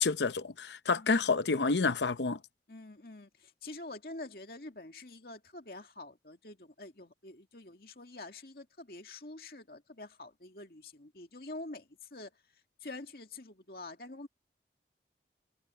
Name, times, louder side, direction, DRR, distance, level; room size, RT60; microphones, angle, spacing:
voice 1, 0.0-2.4, left 4 dB, 85° left, 0.8 m, -29 dB
voice 2, 0.9-1.3 2.7-12.4 12.8-14.3, left 2 dB, 60° left, 2.3 m, -47 dB
head